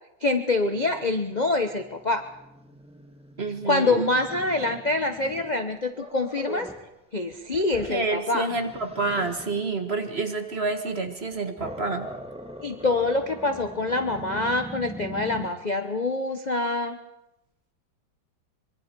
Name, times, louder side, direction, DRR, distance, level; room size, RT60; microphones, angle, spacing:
voice 1, 0.2-2.2 3.6-6.7 7.1-8.5 12.6-17.0, left 2 dB, 30° left, 7 dB, 0.8 m, -25 dB
Growling, 0.7-6.9 7.3-9.6 11.1-15.5, equal, 5° right, 1.6 m, -42 dB
voice 2, 3.4-4.0 7.9-12.1, right 3 dB, 35° right, 6 dB, 1.7 m, -28 dB
25.0 x 23.0 x 4.6 m, 0.89 s
omnidirectional pair, 2.1 m